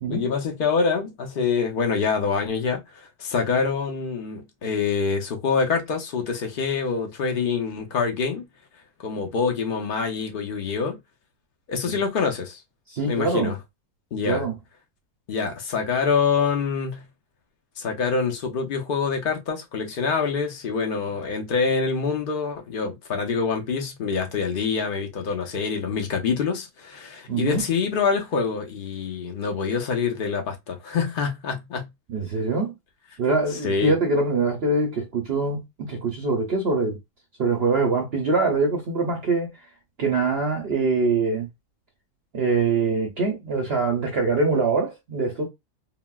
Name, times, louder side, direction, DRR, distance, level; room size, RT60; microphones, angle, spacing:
voice 1, 0.1-8.4 9.0-11.0 11.7-12.6 13.1-13.6 14.1-14.4 15.3-17.0 17.8-31.9 33.6-34.0, left 5 dB, 65° left, 0.5 m, -25 dB
voice 2, 12.9-13.5 14.3-14.5 27.3-27.6 32.1-32.7 33.2-37.0 37.4-39.5 40.0-41.5 42.3-45.4, right 3 dB, 60° right, 0.6 m, -23 dB
3.9 x 2.0 x 2.2 m
omnidirectional pair, 1.7 m